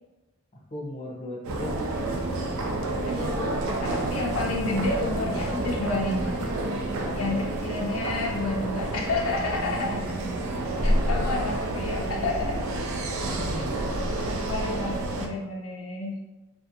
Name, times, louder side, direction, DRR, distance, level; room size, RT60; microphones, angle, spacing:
voice 1, 0.7-1.9 6.9-7.3 10.8-11.1 11.4-12.9 13.2-13.7, equal, 30° left, -3 dB, 0.6 m, -39 dB
sound 1, 1.4-15.3, right 1 dB, 85° right, 0.4 m, -29 dB
voice 2, 3.0-6.3 7.2-10.2 10.8-12.7 14.5-16.2, left 3 dB, 80° left, 0 dB, 0.4 m, -30 dB
2.4 x 2.1 x 2.7 m, 1.1 s
head